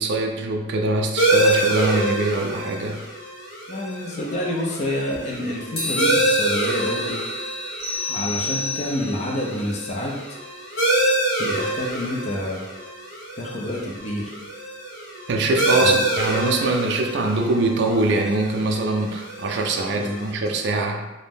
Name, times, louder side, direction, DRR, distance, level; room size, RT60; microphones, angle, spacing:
voice 1, 0.0-3.0 15.3-21.1, right 2 dB, 60° right, 3 dB, 0.3 m, -23 dB
sound 1, 1.2-20.3, right 1 dB, 85° left, 0.9 m, -26 dB
voice 2, 3.7-7.2 8.1-10.1 11.4-12.6 13.4-14.3 15.8-16.1 19.9-20.3, left 1 dB, 35° left, -1 dB, 0.4 m, -28 dB
sound 2, 5.7-11.0, left 1 dB, 50° left, 1.2 m, -34 dB
sound 3, 7.8-9.3, left 4 dB, 25° right, 0.7 m, -29 dB
2.5 x 2.1 x 3.3 m, 1.1 s
head